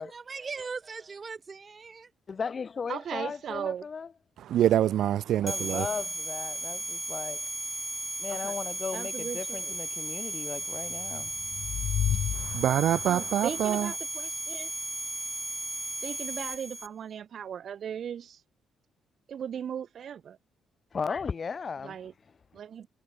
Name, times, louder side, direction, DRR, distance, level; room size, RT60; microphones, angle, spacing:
voice 1, 0.0-2.1, right 5 dB, 35° right, 3.6 m, -39 dB
voice 2, 2.3-4.1 5.4-7.4 8.2-11.3 20.9-22.0, left 5 dB, 40° left, 4.4 m, -36 dB
voice 3, 2.9-3.9 8.3-8.5 8.9-9.8 13.0-14.7 16.0-18.4 19.3-20.4 21.8-22.1 22.5-22.9, right 8 dB, 60° right, 3.0 m, -37 dB
voice 4, 4.4-5.9 12.3-13.9, right 11 dB, 75° right, 0.4 m, -25 dB
sound 1, 5.5-16.9, right 1 dB, 10° right, 1.0 m, -35 dB
sound 2, 10.9-13.3, left 10 dB, 70° left, 0.5 m, -32 dB
cardioid pair, 90°, 0 cm